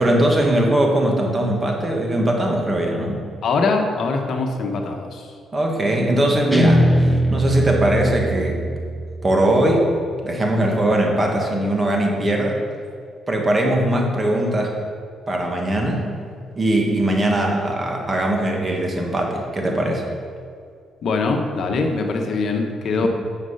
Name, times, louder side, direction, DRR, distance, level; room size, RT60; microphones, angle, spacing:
voice 1, 0.0-3.3 5.5-8.6 9.2-9.9 10.2-12.6 13.3-14.8 15.3-16.1 16.6-20.1 23.0-23.1, right 1 dB, 25° right, 1 dB, 1.8 m, -20 dB
voice 2, 3.4-5.3 21.0-23.1, left 3 dB, 60° left, 3 dB, 1.2 m, -22 dB
Guitar, 6.5-9.7, equal, 5° right, 0.9 m, -21 dB
9.8 x 6.8 x 5.6 m, 2.2 s
cardioid pair, 90°, 0 cm